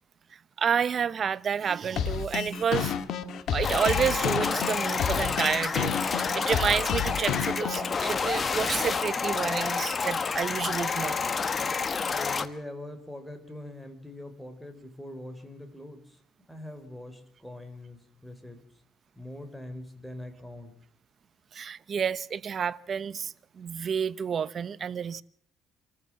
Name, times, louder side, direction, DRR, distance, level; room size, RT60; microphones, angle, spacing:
voice 1, 0.3-2.9 3.5-11.2 21.5-25.2, right 7 dB, 40° right, 0.8 m, -30 dB
sound 1, 2.0-8.0, left 8 dB, 65° left, 2.0 m, -30 dB
sound 2, 3.6-12.5, left 5 dB, 30° left, 1.3 m, -29 dB
voice 2, 12.1-16.2 16.5-18.6 19.2-20.7, left 1 dB, ahead, 4.0 m, -42 dB
28.0 x 14.5 x 7.4 m
cardioid pair, 115°, 0 cm